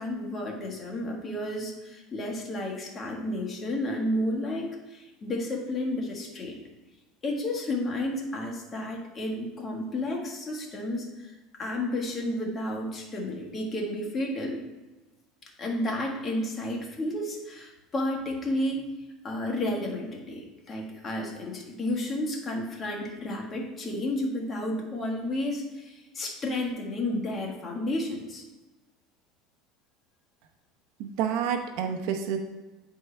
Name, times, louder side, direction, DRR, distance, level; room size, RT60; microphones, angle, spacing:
voice 1, 0.0-6.6 7.2-11.3 11.6-14.6 15.6-18.8 19.2-28.4, left 1 dB, 25° left, -1 dB, 1.5 m, -31 dB
voice 2, 31.0-32.4, right 8 dB, 70° right, 5 dB, 0.8 m, -29 dB
9.5 x 4.5 x 3.3 m, 1.1 s
supercardioid pair, 125°, 0 cm